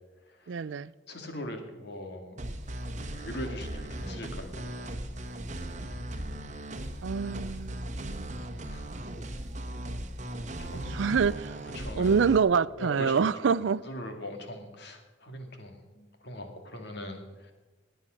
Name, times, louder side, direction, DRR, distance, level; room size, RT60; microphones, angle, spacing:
voice 1, 0.5-0.9 7.0-8.3 10.7-11.6 11.9-13.8, right 6 dB, 70° right, 0.4 m, -26 dB
voice 2, 1.1-2.5 3.1-4.6 8.7-8.8 10.6-11.1 11.7-12.2 12.8-13.3 13.8-17.5, left 1 dB, 60° left, 2.3 m, -41 dB
sound 1, 2.4-12.4, right 1 dB, 40° right, 1.2 m, -38 dB
19.5 x 9.3 x 6.4 m
head